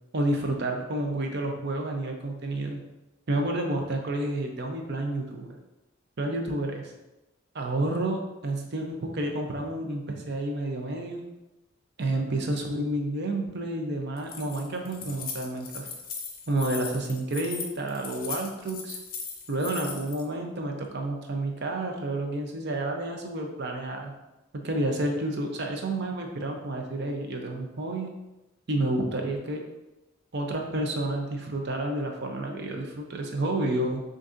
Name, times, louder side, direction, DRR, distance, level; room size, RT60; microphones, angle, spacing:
voice 1, 0.1-2.8 3.3-5.5 6.2-6.9 7.5-11.2 12.0-15.9 16.5-19.0 19.5-24.1 24.5-28.1 28.7-29.6 30.3-34.0, right 1 dB, 55° right, 2 dB, 0.6 m, -30 dB
Keys jangling, 14.2-20.2, left 5 dB, 45° left, 0.6 m, -38 dB
6.0 x 2.6 x 2.6 m, 0.98 s
head